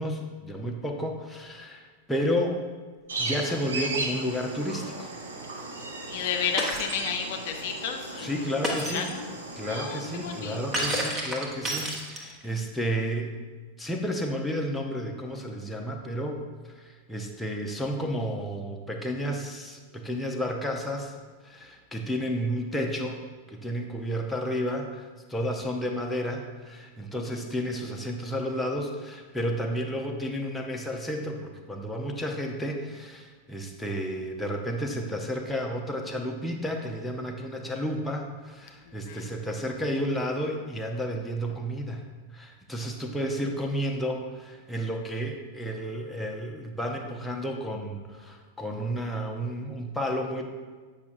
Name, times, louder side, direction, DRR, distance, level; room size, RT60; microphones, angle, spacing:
voice 1, 0.0-2.6 3.2-5.1 8.2-9.1 9.5-13.4 13.8-16.4 16.7-21.1 21.4-23.2 23.5-42.0 42.3-50.4, equal, 5° left, 1 dB, 0.7 m, -31 dB
sound 1, 3.1-11.0, right 2 dB, 70° right, 0.8 m, -36 dB
voice 2, 6.1-8.3 8.8-9.3 9.7-11.0 38.9-39.3, left 7 dB, 50° left, 4 dB, 0.5 m, -32 dB
Shatter, 6.6-7.0 8.6-9.1 10.7-12.4, right 1 dB, 20° right, 1.2 m, -30 dB
8.2 x 5.6 x 2.6 m, 1.4 s
figure-of-eight pair, 90°, 0 cm